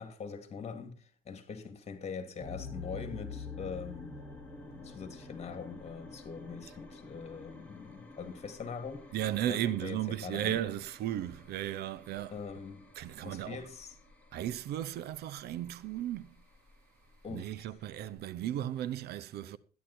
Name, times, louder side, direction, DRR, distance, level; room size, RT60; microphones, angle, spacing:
voice 1, 0.0-4.2 4.7-9.1 9.5-10.6 12.3-12.9 13.2-14.0 17.2-17.7, left 5 dB, 40° left, 2.8 m, -43 dB
sound 1, 2.4-18.1, left 4 dB, 10° left, 3.9 m, -49 dB
voice 2, 9.1-12.3 13.0-13.6 14.3-16.3 17.3-19.6, right 12 dB, 70° right, 0.8 m, -35 dB
13.5 x 10.5 x 4.4 m
cardioid pair, 110°, 17 cm